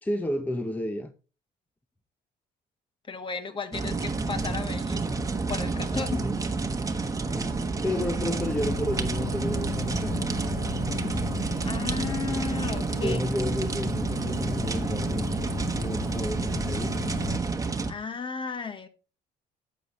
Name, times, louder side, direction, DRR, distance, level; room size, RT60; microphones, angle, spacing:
voice 1, 0.0-1.1 5.9-6.4 7.3-10.2 13.0-15.2 15.7-17.0, left 1 dB, 10° left, 0.8 m, -31 dB
voice 2, 3.1-5.1 5.5-6.2 11.6-13.2 16.4-16.6 17.9-18.9, left 4 dB, 30° left, 1.3 m, -34 dB
sound 1, 3.7-17.9, right 3 dB, 20° right, 1.2 m, -29 dB
sound 2, 8.4-17.4, left 9 dB, 70° left, 1.1 m, -37 dB
11.5 x 8.1 x 3.1 m
cardioid pair, 110°, 17 cm